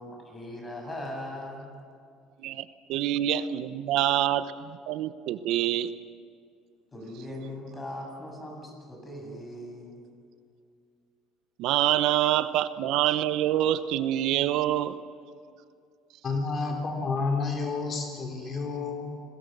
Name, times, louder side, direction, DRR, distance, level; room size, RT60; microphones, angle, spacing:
voice 1, 0.0-1.7 6.9-10.0, left 1 dB, 20° left, 1 dB, 7.8 m, -39 dB
voice 2, 2.4-5.9 11.6-15.0, right 12 dB, 70° right, 13 dB, 0.9 m, -26 dB
voice 3, 16.2-19.1, left 4 dB, 40° left, 2 dB, 3.7 m, -30 dB
27.5 x 20.5 x 6.8 m, 2.3 s
cardioid pair, 115°, 0 cm